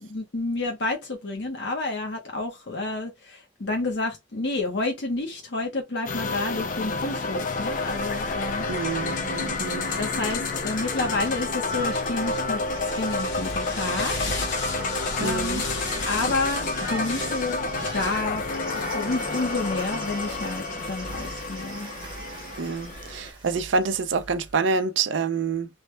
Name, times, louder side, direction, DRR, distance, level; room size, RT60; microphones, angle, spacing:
voice 1, 0.0-8.7 9.6-14.2 15.2-15.7 16.0-18.4 18.9-21.9, left 2 dB, 65° left, 0.8 m, -30 dB
sound 1, 6.1-23.3, left 3 dB, 45° left, 0.4 m, -30 dB
Cheering, 8.6-9.4 9.7-24.2, right 3 dB, 25° right, 0.9 m, -43 dB
voice 2, 8.7-9.9 15.2-15.6 22.6-25.7, right 4 dB, 85° right, 0.5 m, -27 dB
sound 2, 12.1-24.5, left 2 dB, 85° left, 1.1 m, -38 dB
3.2 x 2.1 x 3.1 m
head